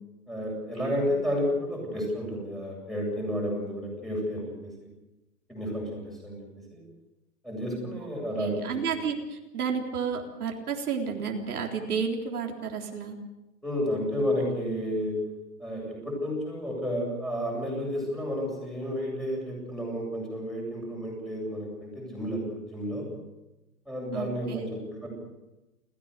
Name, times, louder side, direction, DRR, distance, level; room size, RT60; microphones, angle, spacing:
voice 1, 0.3-4.7 5.5-6.8 7.4-8.7 13.6-15.1 15.6-23.1 23.9-25.1, equal, ahead, -2 dB, 7.8 m, -31 dB
voice 2, 8.4-13.2 24.1-24.6, right 6 dB, 70° right, 1 dB, 3.8 m, -31 dB
29.5 x 15.5 x 6.7 m, 1.0 s
hypercardioid pair, 145°, 46 cm